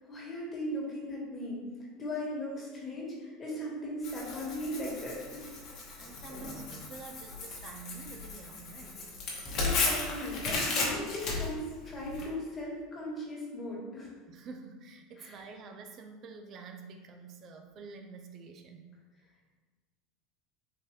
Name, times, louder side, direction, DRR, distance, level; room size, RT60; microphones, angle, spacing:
voice 1, 0.1-1.6 2.0-5.6 9.5-14.1 15.2-15.5, left 1 dB, 30° left, -4 dB, 1.4 m, -38 dB
Tearing, 4.0-12.2, left 3 dB, 50° left, 0.9 m, -35 dB
voice 2, 6.0-9.1 14.3-18.9, right 4 dB, 50° right, 4 dB, 0.3 m, -48 dB
3.8 x 2.5 x 3.2 m, 1.4 s
hypercardioid pair, 85°, 0 cm